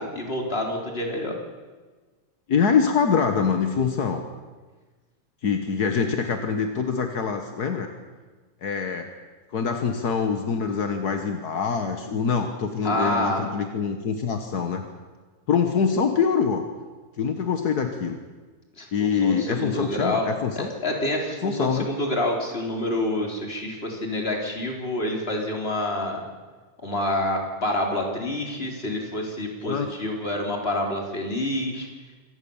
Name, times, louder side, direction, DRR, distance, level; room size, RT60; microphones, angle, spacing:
voice 1, 0.0-1.4 12.8-13.5 18.8-20.3 20.6-26.2 26.8-31.9, left 1 dB, 20° left, 1 dB, 4.0 m, -27 dB
voice 2, 2.5-4.2 5.4-7.9 8.6-9.1 9.5-14.8 15.5-16.6 17.2-18.2 18.9-20.7 21.4-21.9 29.6-29.9, left 6 dB, 50° left, 6 dB, 1.2 m, -24 dB
26.0 x 18.5 x 7.2 m, 1.3 s
omnidirectional pair, 3.4 m